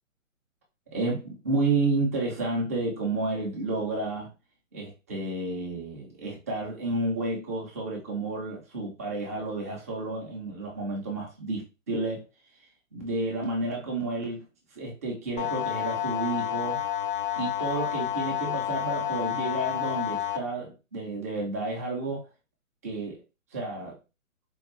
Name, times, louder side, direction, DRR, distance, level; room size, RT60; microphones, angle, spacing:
voice 1, 0.9-4.3 4.7-12.2 12.9-14.4 14.8-16.8 17.4-22.3 22.8-23.2 23.5-24.0, right 2 dB, 10° right, 0.4 m, -31 dB
sound 1, 15.4-20.4, left 12 dB, 40° left, 0.4 m, -30 dB
4.3 x 2.3 x 3.1 m
hypercardioid pair, 140°, 41 cm